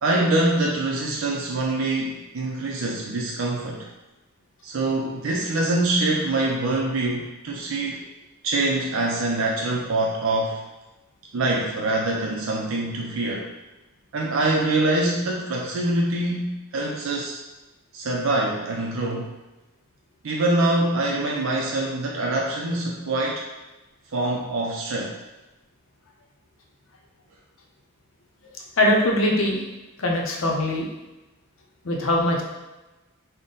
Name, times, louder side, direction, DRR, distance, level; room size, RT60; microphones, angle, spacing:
voice 1, 0.0-3.9 4.6-8.0 8.4-10.6 11.3-13.5 14.1-17.4 17.9-19.3 20.2-23.4 24.1-25.2, right 2 dB, 60° right, -2 dB, 0.5 m, -24 dB
voice 2, 28.8-29.6 30.0-30.9 31.8-32.4, left 1 dB, 60° left, -1 dB, 0.7 m, -21 dB
3.8 x 2.1 x 3.8 m, 1.1 s
head